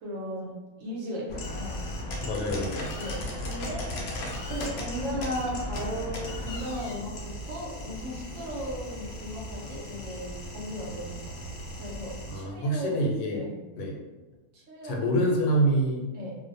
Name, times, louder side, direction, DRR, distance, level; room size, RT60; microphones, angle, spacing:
voice 1, 0.0-1.8 3.0-3.8 4.5-13.0 13.3-13.5 14.5-15.1 16.1-16.4, equal, 65° right, -3 dB, 0.9 m, -36 dB
sound 1, 1.3-12.4, left 1 dB, 70° left, 0.6 m, -36 dB
voice 2, 2.2-2.9 12.3-13.5 13.7-14.0 14.8-16.1, right 1 dB, 85° left, 0 dB, 1.1 m, -26 dB
2.5 x 2.1 x 2.6 m, 1.2 s
omnidirectional pair, 1.6 m